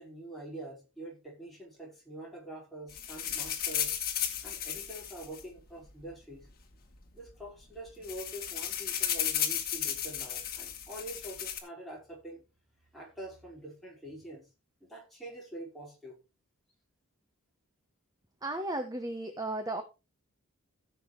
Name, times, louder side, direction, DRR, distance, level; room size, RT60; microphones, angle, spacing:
voice 1, 0.0-3.9 4.4-6.5 7.1-12.4 12.9-14.5 14.8-16.2, right 1 dB, ahead, 4.8 m, -45 dB
sound 1, 2.9-6.1 6.9-7.0 7.3-7.5 7.8-11.6, left 9 dB, 40° left, 2.0 m, -34 dB
voice 2, 18.4-19.8, right 2 dB, 15° right, 1.0 m, -34 dB
15.5 x 7.0 x 3.2 m
head